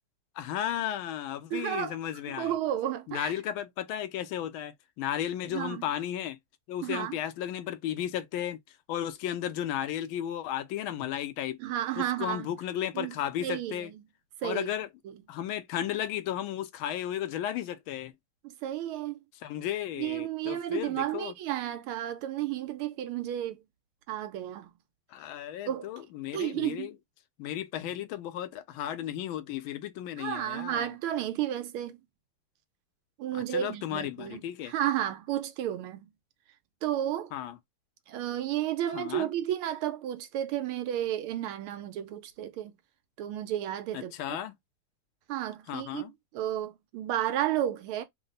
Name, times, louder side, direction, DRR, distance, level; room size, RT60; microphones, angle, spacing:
voice 1, 0.4-2.5 3.1-6.4 6.7-8.6 8.9-11.6 12.0-13.9 14.4-14.9 15.3-18.1 19.4-21.3 25.1-26.9 27.4-30.9 33.3-34.7 37.3-37.6 38.9-39.3 43.9-44.5 45.7-46.1, left 11 dB, 75° left, 1.3 m, -34 dB
voice 2, 1.5-2.0 2.3-3.3 5.5-5.8 6.8-7.1 11.6-12.5 12.9-14.0 14.4-14.7 15.1-15.2 18.4-19.2 20.0-23.6 24.1-24.7 25.7-25.9 26.3-26.9 30.2-32.0 33.2-36.1 36.8-37.3 38.1-42.7 43.2-44.4 45.3-48.0, right 11 dB, 90° right, 1.6 m, -32 dB
3.8 x 2.1 x 3.8 m
omnidirectional pair, 2.3 m